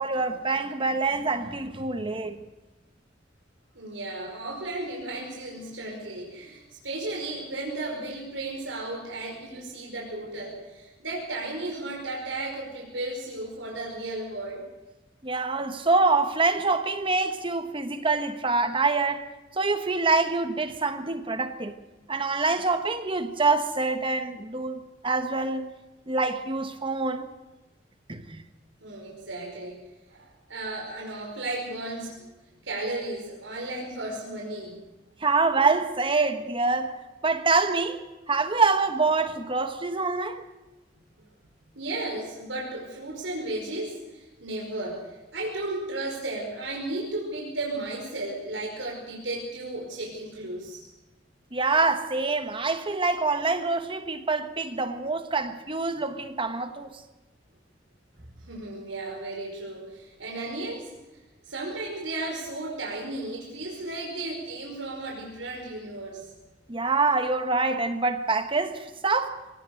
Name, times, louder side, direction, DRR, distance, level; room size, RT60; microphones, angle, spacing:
voice 1, 0.0-2.4 15.2-19.3 19.6-21.8 22.1-25.7 26.1-27.3 28.1-28.4 35.2-37.0 37.2-40.4 51.5-56.9 66.7-69.4, right 3 dB, 30° right, 1.3 m, -25 dB
voice 2, 3.7-14.6 28.8-29.8 30.1-32.1 32.6-34.8 41.7-50.8 58.4-60.9 61.4-66.3, right 2 dB, 90° right, 5.1 m, -34 dB
24.5 x 18.5 x 6.6 m
head